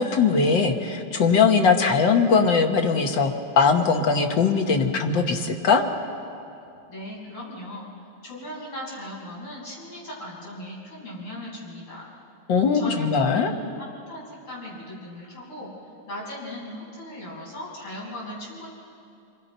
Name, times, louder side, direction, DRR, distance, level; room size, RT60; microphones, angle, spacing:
voice 1, 0.0-5.8 12.5-13.5, left 5 dB, 60° left, 4 dB, 2.1 m, -20 dB
voice 2, 6.9-7.9 8.2-12.1 12.7-15.7 16.1-18.7, left 1 dB, 85° left, -6 dB, 7.7 m, -38 dB
28.5 x 22.0 x 5.6 m, 2.6 s
omnidirectional pair, 2.4 m